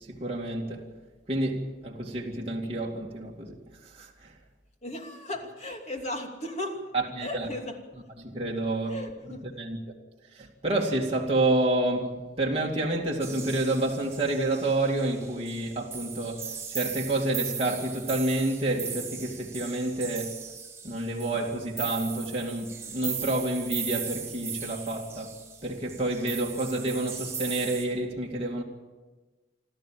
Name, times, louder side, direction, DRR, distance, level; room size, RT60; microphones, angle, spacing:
voice 1, 0.1-0.8 1.3-3.6 4.0-4.1 6.9-7.5 8.2-9.0 9.6-9.8 10.3-20.4 20.8-28.6, right 2 dB, 35° right, 2.5 m, -29 dB
voice 2, 4.8-6.9 7.2-7.8 8.9-9.6, left 1 dB, 40° left, 2.8 m, -36 dB
sound 1, 13.2-27.9, right 6 dB, 15° right, 4.3 m, -38 dB
28.0 x 13.0 x 7.6 m
head